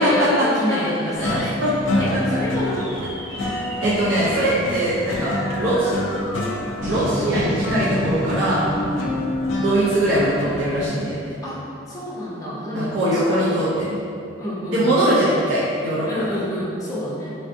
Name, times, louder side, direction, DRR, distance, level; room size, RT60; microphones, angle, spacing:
voice 1, 0.0-1.5 2.0-3.1 8.7-9.3 11.4-13.5 14.4-15.3 16.1-17.3, left 1 dB, 20° left, -9 dB, 0.7 m, -28 dB
sound 1, 1.1-10.9, left 1 dB, 90° left, 0.4 m, -27 dB
voice 2, 1.2-1.7 3.8-5.9 6.9-8.7 9.6-11.2 12.7-14.0 14.7-16.3, right 1 dB, 85° right, -8 dB, 0.5 m, -21 dB
sound 2, 2.8-11.4, equal, 40° right, 0.9 m, -31 dB
3.2 x 2.4 x 2.6 m, 2.5 s
head